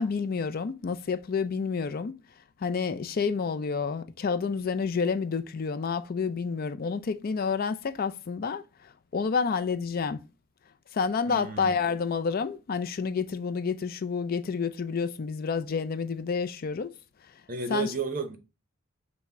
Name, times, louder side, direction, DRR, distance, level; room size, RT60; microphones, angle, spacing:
voice 1, 0.0-2.1 2.6-8.6 9.1-10.2 10.9-16.9 17.7-17.9, left 5 dB, 45° left, 0.4 m, -29 dB
voice 2, 11.3-11.7 17.5-18.4, right 4 dB, 40° right, 0.7 m, -32 dB
5.8 x 2.1 x 4.2 m
head